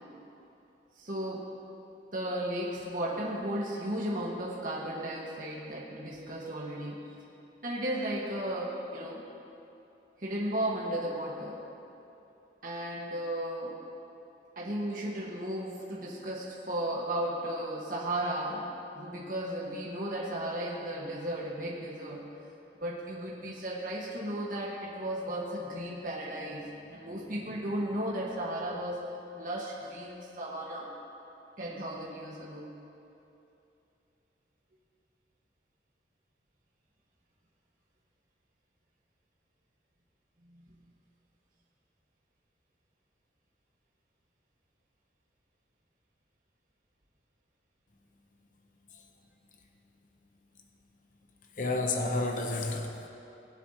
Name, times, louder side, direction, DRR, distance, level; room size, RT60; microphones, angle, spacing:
voice 1, 1.0-1.5 2.1-7.2 7.6-9.2 10.2-11.6 12.6-13.8 14.5-18.6 18.9-22.3 22.8-29.1 29.3-30.9 31.6-32.7 40.4-40.8, right 1 dB, 50° right, -5 dB, 1.5 m, -35 dB
voice 2, 51.6-53.1, left 2 dB, 45° left, 2 dB, 0.8 m, -30 dB
21.0 x 7.9 x 2.9 m, 2.8 s
head